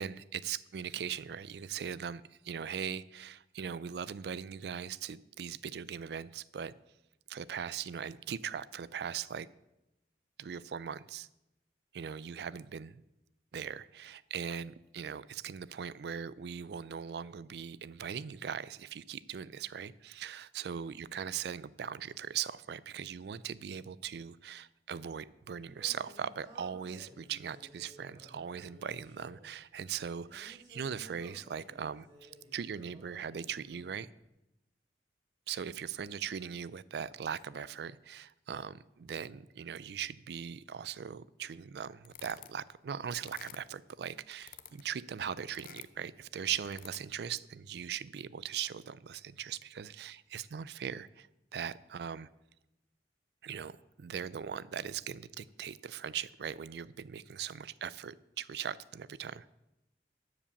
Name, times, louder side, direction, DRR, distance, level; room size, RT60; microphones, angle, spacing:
voice 1, 0.0-6.7 7.3-9.5 10.4-11.3 11.9-13.0 13.5-34.1 35.5-51.3 51.5-52.3 53.4-59.5, right 8 dB, 65° right, 19 dB, 0.4 m, -40 dB
Singing, 25.6-34.1, equal, 25° right, 2.9 m, -57 dB
sound 1, 42.0-42.7 43.1-43.9 44.3-45.0 45.4-46.1 46.6-47.3, left 10 dB, 50° left, 0.5 m, -51 dB
12.0 x 5.0 x 7.0 m, 0.92 s
head